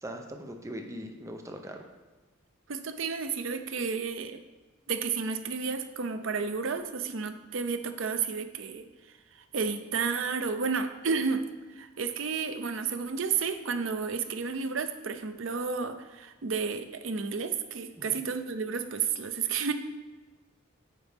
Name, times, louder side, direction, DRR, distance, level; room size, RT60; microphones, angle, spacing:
voice 1, 0.0-1.8 18.0-18.2, equal, 15° right, 4 dB, 0.6 m, -40 dB
voice 2, 2.7-4.4 4.9-8.9 9.5-11.5 11.8-19.7, right 5 dB, 70° right, 9 dB, 0.6 m, -31 dB
9.3 x 5.2 x 3.5 m, 1.2 s
head